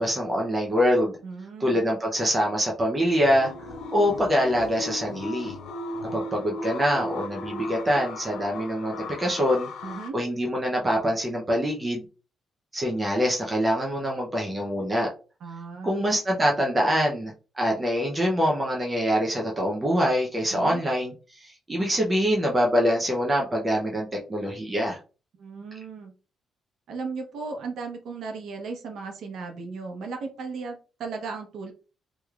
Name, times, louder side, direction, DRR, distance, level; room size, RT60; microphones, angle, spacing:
voice 1, 0.0-1.1 1.6-3.5 3.9-5.5 6.1-9.7 10.1-12.0 12.7-15.1 15.8-25.0, equal, 15° right, -1 dB, 0.6 m, -24 dB
voice 2, 1.2-1.8 9.8-10.2 15.4-16.1 20.5-20.8 25.4-26.1 26.9-31.7, right 4 dB, 65° right, 3 dB, 0.9 m, -36 dB
sound 1, 3.2-10.1, left 2 dB, 80° left, 0.5 m, -37 dB
3.4 x 3.1 x 2.3 m, 0.34 s
cardioid pair, 165°, 0 cm